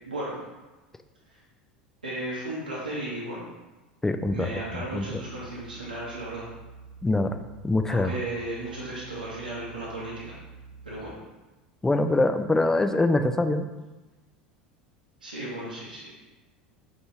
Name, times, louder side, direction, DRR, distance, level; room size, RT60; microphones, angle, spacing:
voice 1, 0.0-0.4 1.3-1.4 2.0-3.5 4.3-6.5 7.9-10.4 10.8-11.2 15.2-16.1, right 1 dB, 85° right, -7 dB, 0.8 m, -35 dB
voice 2, 4.0-5.2 7.0-7.4 7.6-8.1 11.8-13.7, left 2 dB, 10° left, 8 dB, 0.3 m, -24 dB
sound 1, 4.2-11.0, right 4 dB, 65° left, 0.9 m, -47 dB
5.3 x 2.9 x 2.8 m, 1.1 s
figure-of-eight pair, 80°, 5 cm